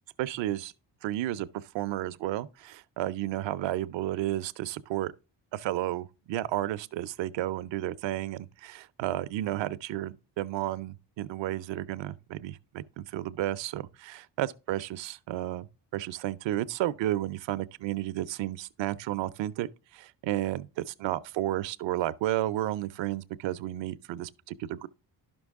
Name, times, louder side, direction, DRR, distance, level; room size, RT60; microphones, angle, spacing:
voice 1, 0.2-0.7 1.0-5.1 5.5-15.7 15.9-19.7 19.9-24.9, right 14 dB, 75° right, 0.7 m, -32 dB
11.0 x 6.1 x 3.5 m
cardioid pair, 85°, 45 cm